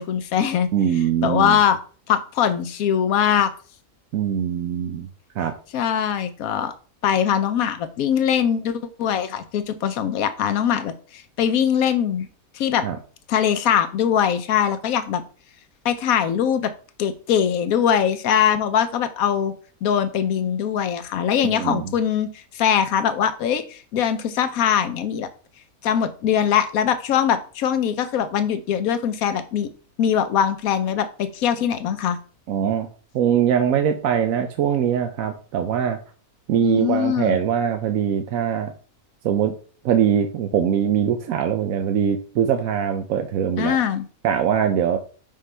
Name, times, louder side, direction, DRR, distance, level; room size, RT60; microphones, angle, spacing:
voice 1, 0.0-0.7 1.2-1.8 2.1-3.5 5.7-6.7 7.0-12.3 12.5-12.9 13.3-15.2 15.8-16.7 17.0-19.5 19.8-25.3 25.8-29.7 30.0-32.2 36.6-37.4 43.6-44.1, left 8 dB, 75° left, 11 dB, 1.1 m, -22 dB
voice 2, 0.7-1.6 4.1-5.1 5.4-5.5 12.8-13.0 21.4-21.9 32.5-32.9 33.1-36.0 36.5-38.7 39.2-39.5 39.8-43.8 44.2-45.0, right 9 dB, 75° right, 6 dB, 1.0 m, -22 dB
5.5 x 5.2 x 3.3 m, 0.39 s
omnidirectional pair, 1.5 m